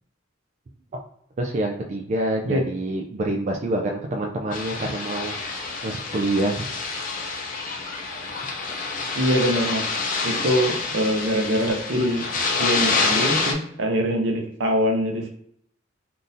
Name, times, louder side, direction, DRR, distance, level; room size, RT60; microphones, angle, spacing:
voice 1, 1.4-5.3 5.8-6.7, right 1 dB, 35° right, 1 dB, 0.3 m, -26 dB
sound 1, 4.5-13.5, left 4 dB, 45° left, 0.5 m, -27 dB
voice 2, 9.1-9.8 10.2-12.2 12.6-15.4, equal, 70° right, 3 dB, 0.7 m, -23 dB
3.7 x 2.5 x 2.6 m, 0.68 s
head